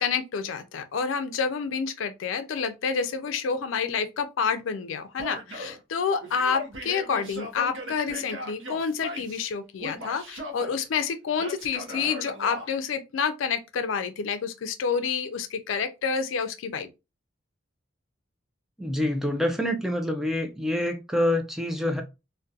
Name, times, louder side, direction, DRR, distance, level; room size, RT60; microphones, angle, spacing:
voice 1, 0.0-16.9, left 6 dB, 80° left, 0.4 m, -28 dB
Male speech man speaking / Yell, 5.2-5.8 6.2-9.5 9.8-10.8 11.4-12.7, equal, 70° right, 0.7 m, -38 dB
voice 2, 18.8-22.0, left 1 dB, ahead, 0.3 m, -26 dB
2.3 x 2.1 x 2.6 m
head